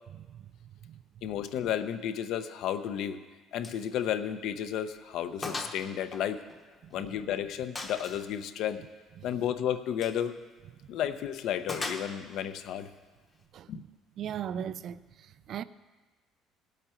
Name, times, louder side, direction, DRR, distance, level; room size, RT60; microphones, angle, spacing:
voice 1, 1.2-3.2 3.5-6.4 6.9-8.8 9.2-10.3 10.9-12.9 13.7-13.8, left 9 dB, 55° left, 0.7 m, -32 dB
Gunshot gunfire, 3.6-3.8 4.2-4.3 4.8-4.9 5.4-5.8 6.1-7.1 7.8-8.3 9.9-10.2 11.7-12.4, left 2 dB, 20° left, 0.9 m, -38 dB
voice 2, 13.5-13.9 14.2-15.6, right 9 dB, 40° right, 0.3 m, -39 dB
18.5 x 8.1 x 4.4 m
cardioid pair, 180°, 0 cm